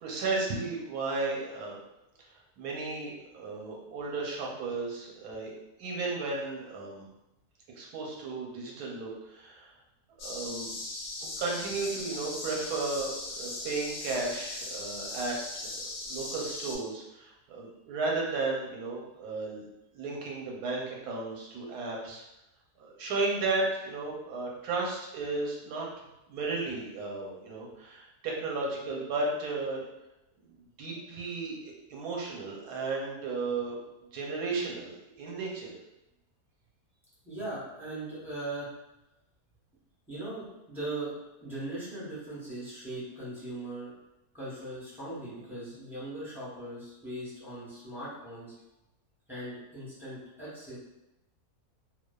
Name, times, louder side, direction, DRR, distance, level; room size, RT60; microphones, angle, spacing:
voice 1, 0.0-1.8 2.6-5.5 5.8-7.0 7.8-9.7 10.2-10.7 11.4-15.7 16.0-19.6 19.9-22.2 22.8-25.9 26.3-29.9 30.5-33.8 34.1-34.9 35.2-35.7, right 3 dB, 85° right, -2 dB, 1.2 m, -34 dB
sound 1, 10.2-16.8, left 2 dB, 80° left, 1.1 m, -39 dB
voice 2, 37.2-38.7 40.1-41.1 41.4-43.9 44.3-48.5 49.3-50.8, right 2 dB, ahead, -10 dB, 0.6 m, -39 dB
2.6 x 2.2 x 2.2 m, 0.91 s
omnidirectional pair, 1.6 m